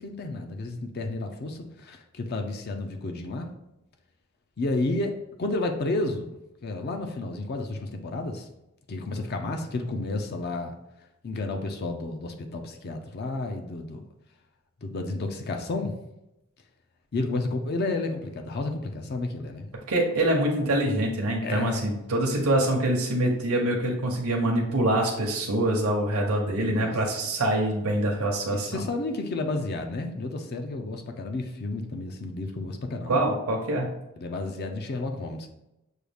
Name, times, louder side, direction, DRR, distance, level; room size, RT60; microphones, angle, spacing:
voice 1, 0.0-3.5 4.6-5.1 5.4-6.3 6.6-8.5 8.9-10.7 11.2-14.0 14.8-15.9 17.1-19.7 21.4-21.9 26.5-26.9 28.5-33.2 34.2-35.5, left 2 dB, 45° left, 4 dB, 0.4 m, -31 dB
voice 2, 19.9-28.8 33.1-33.9, right 1 dB, 75° right, -1 dB, 0.8 m, -25 dB
6.3 x 2.3 x 3.4 m, 0.89 s
head